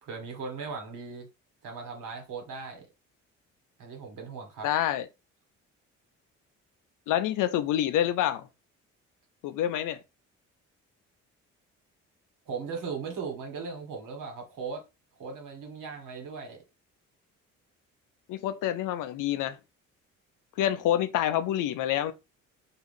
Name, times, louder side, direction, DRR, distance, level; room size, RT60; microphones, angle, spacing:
voice 1, 0.0-1.3 1.6-2.9 3.8-4.7 12.4-14.8 15.2-16.6, right 5 dB, 60° right, 1.5 m, -38 dB
voice 2, 4.6-5.1 7.1-8.5 9.4-10.0 18.3-19.6 20.6-22.1, left 11 dB, 55° left, 0.5 m, -27 dB
4.7 x 2.4 x 3.3 m
hypercardioid pair, 45°, 37 cm